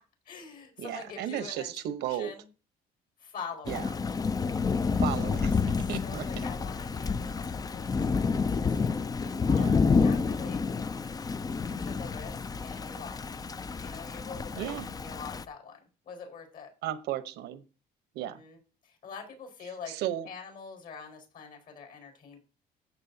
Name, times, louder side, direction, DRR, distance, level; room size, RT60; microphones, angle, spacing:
voice 1, 0.3-2.5 3.2-3.8 4.6-5.4 6.0-10.6 11.6-13.3 13.8-16.7 18.2-18.6 18.8-20.0 20.2-22.4, left 5 dB, 60° left, 4 dB, 5.1 m, -45 dB
voice 2, 0.8-2.3 3.7-3.9 5.0-6.4 9.5-9.7 14.6-14.9 16.8-17.6 18.1-18.4 19.9-20.3, right 12 dB, 80° right, 11 dB, 1.1 m, -35 dB
Thunder / Rain, 3.6-15.4, left 5 dB, 20° left, 0.5 m, -29 dB
13.5 x 7.5 x 2.8 m, 0.33 s
cardioid pair, 110°, 17 cm